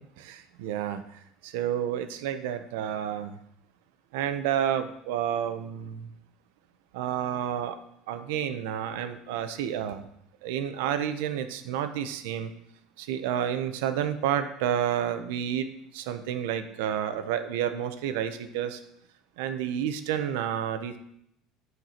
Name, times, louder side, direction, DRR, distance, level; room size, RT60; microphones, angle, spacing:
voice 1, 0.2-1.0 1.4-3.4 4.1-6.1 6.9-7.8 8.1-10.1 10.4-12.5 13.0-18.8 19.4-21.0, right 9 dB, 85° right, 9 dB, 0.8 m, -30 dB
9.5 x 4.7 x 5.8 m, 0.74 s
cardioid pair, 130°, 0 cm